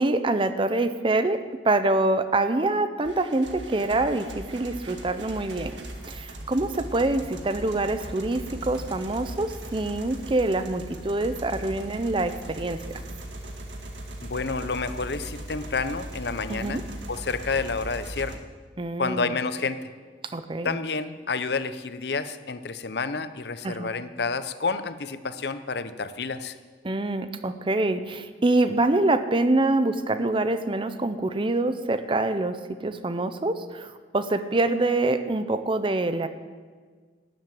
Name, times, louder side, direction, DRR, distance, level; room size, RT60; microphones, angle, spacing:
voice 1, 0.0-5.8 6.1-12.8 16.5-16.8 18.8-19.3 20.3-20.8 23.6-23.9 26.8-36.3, right 2 dB, 30° right, 10 dB, 0.6 m, -25 dB
sound 1, 3.0-18.4, right 1 dB, 85° right, 1.7 m, -39 dB
voice 2, 14.2-18.4 19.0-19.8 20.6-26.6, left 4 dB, 60° left, 12 dB, 0.7 m, -29 dB
13.0 x 7.8 x 9.2 m, 1.5 s
head